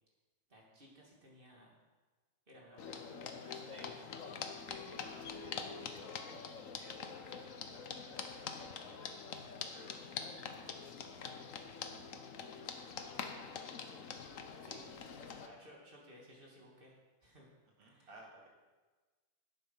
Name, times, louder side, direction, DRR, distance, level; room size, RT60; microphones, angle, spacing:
voice 1, 0.5-1.8 2.5-3.1 3.4-4.0 14.6-14.8 15.4-17.0 17.2-17.5 17.8-18.1, equal, 30° right, -3 dB, 2.6 m, -58 dB
sound 1, 2.8-15.5, left 6 dB, 55° left, 1.0 m, -45 dB
voice 2, 4.7-8.9 9.3-10.8 11.4-12.4 13.6-15.4 17.8-18.5, right 2 dB, 85° right, -1 dB, 2.9 m, -61 dB
11.0 x 8.4 x 5.6 m, 1.3 s
omnidirectional pair, 2.0 m